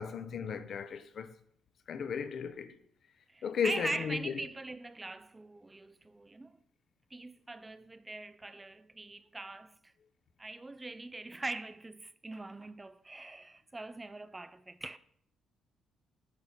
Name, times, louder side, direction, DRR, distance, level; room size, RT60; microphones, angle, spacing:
voice 1, 0.0-1.3 1.9-2.8 3.4-4.3, left 6 dB, 60° left, 0.6 m, -35 dB
voice 2, 3.3-6.6 7.1-9.9 10.4-15.0, right 2 dB, 20° right, 0.3 m, -42 dB
9.4 x 3.3 x 5.7 m
cardioid pair, 90°, 0 cm